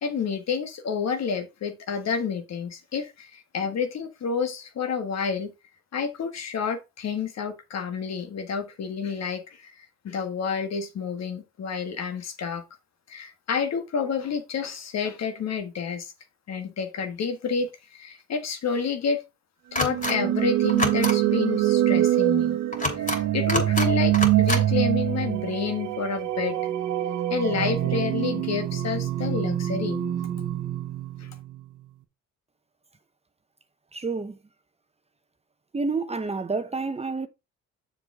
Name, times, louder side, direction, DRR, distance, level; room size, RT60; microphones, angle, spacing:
voice 1, 0.0-5.5 5.9-12.6 13.1-16.1 16.5-19.2 19.7-22.6 23.0-26.6 27.3-30.0 31.2-31.3, left 6 dB, 60° left, 1.6 m, -29 dB
sound 1, 19.7-20.1 20.7-21.1 22.7-23.2 23.5-23.9 24.1-24.6, left 1 dB, 25° left, 2.8 m, -27 dB
sound 2, 19.8-31.7, right 13 dB, 80° right, 1.0 m, -25 dB
voice 2, 33.9-34.4 35.7-37.3, right 4 dB, 20° right, 0.8 m, -29 dB
6.9 x 5.5 x 3.7 m
cardioid pair, 90°, 30 cm